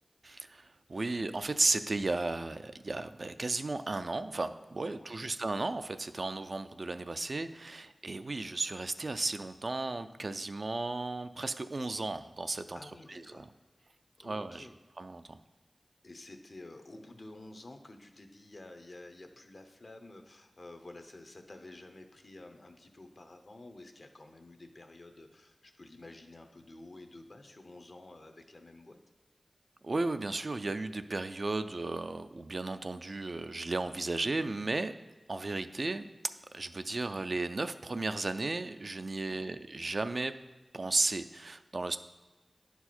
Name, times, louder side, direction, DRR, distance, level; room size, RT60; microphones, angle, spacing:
voice 1, 0.2-12.8 13.1-13.4 14.2-14.7 15.0-15.4 29.8-34.9 35.3-36.1 36.5-40.3 40.7-42.0, right 2 dB, 60° right, 10 dB, 0.4 m, -34 dB
voice 2, 4.9-5.3 12.7-13.5 14.2-14.7 16.0-29.0 39.3-39.6, left 2 dB, 60° left, 5 dB, 0.8 m, -51 dB
10.0 x 4.6 x 4.3 m, 1.2 s
wide cardioid pair, 45°, 0 cm